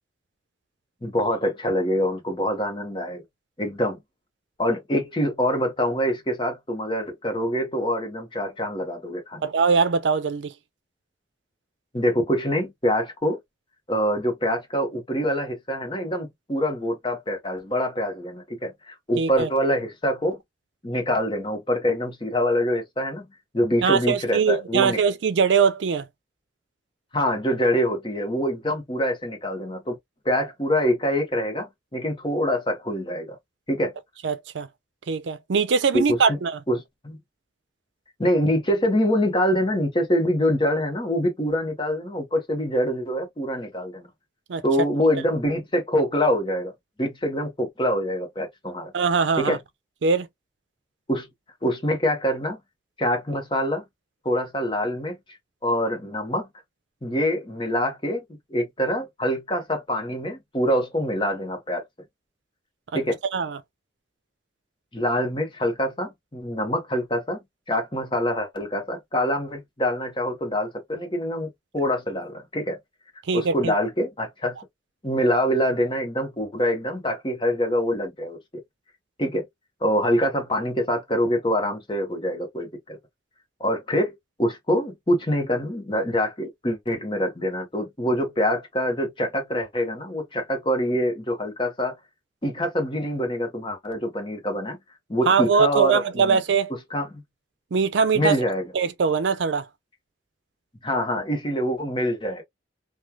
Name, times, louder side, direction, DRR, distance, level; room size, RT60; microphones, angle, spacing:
voice 1, 1.0-3.2 3.6-4.0 4.6-9.5 11.9-13.4 13.9-20.4 20.8-23.2 23.5-25.0 27.1-30.0 30.2-33.4 33.7-33.9 35.9-36.4 36.7-37.2 38.2-44.1 44.6-46.7 47.0-48.9 49.4-49.6 51.1-51.3 51.6-52.6 53.0-53.8 54.2-55.2 55.6-56.5 57.0-58.2 58.5-61.8 62.9-63.2 64.9-67.4 67.7-72.8 73.3-74.5 75.0-78.4 79.2-79.5 79.8-83.0 83.6-91.9 92.4-94.8 95.1-96.4 96.9-97.1 98.1-98.7 100.8-102.4, equal, 25° left, 1.0 m, -25 dB
voice 2, 9.4-10.5 19.2-19.5 23.8-26.0 34.2-34.7 35.1-36.6 44.5-44.6 48.9-49.6 50.0-50.3 63.3-63.6 73.3-73.7 95.3-96.7 97.7-98.4 98.7-99.6, right 5 dB, 80° right, 0.5 m, -22 dB
3.1 x 2.3 x 2.2 m
head